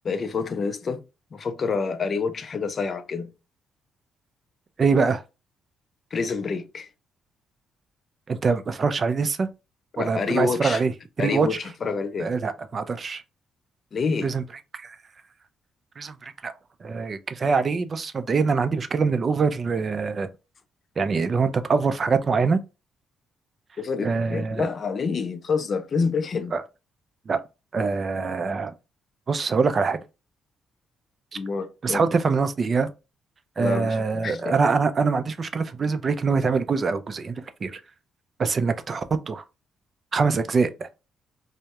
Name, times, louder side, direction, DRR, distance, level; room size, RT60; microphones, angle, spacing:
voice 1, 0.0-1.0 1.3-3.3 6.1-6.9 9.9-10.8 11.2-12.3 13.9-14.3 23.8-26.6 31.3-32.1 33.6-34.6, left 5 dB, 45° left, 0.4 m, -27 dB
voice 2, 4.8-5.2 8.3-9.5 10.0-10.9 11.2-11.5 12.2-13.2 14.2-14.4 14.8-15.0 16.0-16.5 16.8-20.3 21.0-22.6 24.0-24.7 26.5-26.6 27.3-27.4 27.7-28.7 29.3-30.0 31.8-32.9 33.6-37.8 38.4-39.4 40.1-40.9, right 4 dB, 40° right, 0.3 m, -24 dB
2.2 x 2.0 x 2.8 m
cardioid pair, 90°, 0 cm